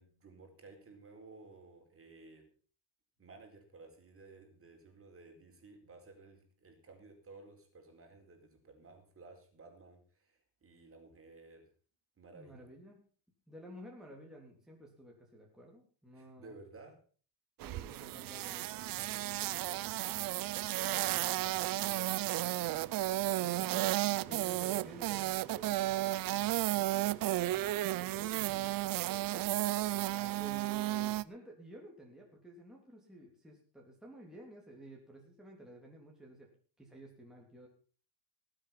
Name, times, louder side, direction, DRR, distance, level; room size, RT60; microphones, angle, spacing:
voice 1, 0.0-2.4 3.2-11.6 12.2-12.6 16.1-17.0 24.0-24.4 28.3-28.4 29.1-29.5, right 3 dB, 25° right, 3 dB, 4.3 m, -55 dB
voice 2, 12.3-13.0 13.5-16.5 17.6-22.9 23.4-27.7 28.0-29.1 30.0-36.5 36.8-37.7, right 1 dB, ahead, -2 dB, 3.4 m, -53 dB
sound 1, 17.6-31.2, right 16 dB, 45° right, 0.6 m, -33 dB
19.5 x 7.9 x 5.9 m, 0.42 s
cardioid pair, 125°, 48 cm